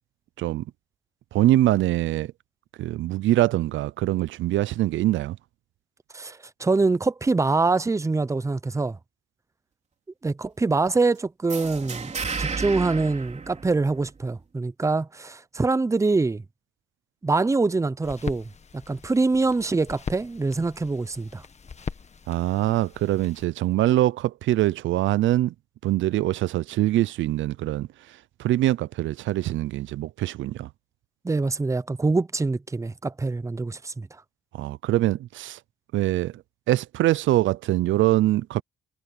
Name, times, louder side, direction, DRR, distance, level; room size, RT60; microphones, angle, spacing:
voice 1, 1.3-2.3 2.8-5.4 22.3-25.5 25.8-30.7 34.5-35.6 35.9-36.4 36.7-38.6, right 15 dB, 75° right, 0.5 m, -23 dB
voice 2, 6.1-9.0 10.2-12.1 12.4-16.4 17.2-18.5 18.9-21.4 31.2-34.1, right 3 dB, 15° right, 0.7 m, -24 dB
sound 1, 11.5-14.2, right 5 dB, 35° right, 3.9 m, -32 dB
sound 2, 18.0-23.4, left 5 dB, 35° left, 1.6 m, -40 dB
cardioid pair, 90°, 20 cm